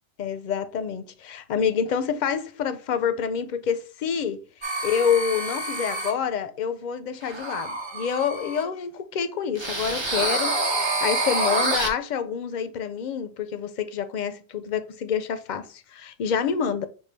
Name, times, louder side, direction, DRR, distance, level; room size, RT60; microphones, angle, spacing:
voice 1, 0.2-4.4 4.8-16.9, left 7 dB, 55° left, 0.5 m, -27 dB
sound 1, 4.6-6.1 7.2-8.6 9.6-11.9, right 2 dB, 30° right, 0.7 m, -27 dB
6.1 x 2.3 x 3.3 m
omnidirectional pair, 1.1 m